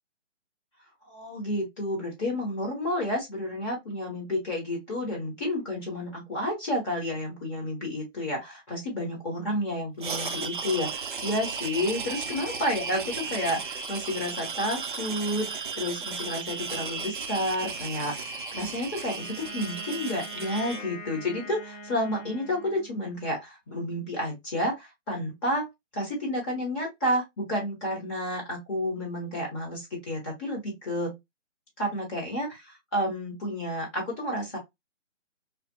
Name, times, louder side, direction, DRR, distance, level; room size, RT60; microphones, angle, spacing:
voice 1, 1.1-25.7 25.9-31.2 31.8-34.6, left 1 dB, 15° left, 1.0 m, -31 dB
sound 1, 10.0-20.8, right 5 dB, 45° right, 0.4 m, -35 dB
Wind instrument woodwind instrument, 19.1-23.4, left 1 dB, 85° left, 1.4 m, -43 dB
2.8 x 2.5 x 2.5 m
figure-of-eight pair, 150°, 37 cm